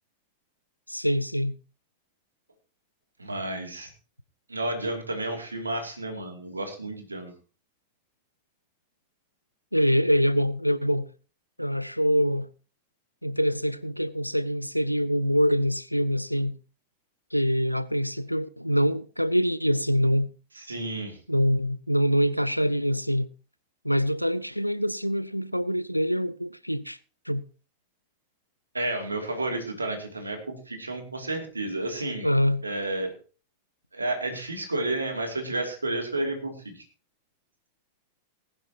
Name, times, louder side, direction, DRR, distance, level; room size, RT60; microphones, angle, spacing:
voice 1, 0.9-1.6 9.7-11.1 11.6-12.5 13.2-16.6 17.3-20.3 21.3-23.3 23.8-27.0 27.3-27.4 32.2-32.6, equal, 90° left, 0.6 m, -25 dB
voice 2, 3.2-3.9 4.5-7.3 20.5-21.2 28.7-32.3 32.6-33.1 33.9-36.8, right 2 dB, 80° right, 2.7 m, -31 dB
19.0 x 10.5 x 2.9 m
figure-of-eight pair, 90°, 0 cm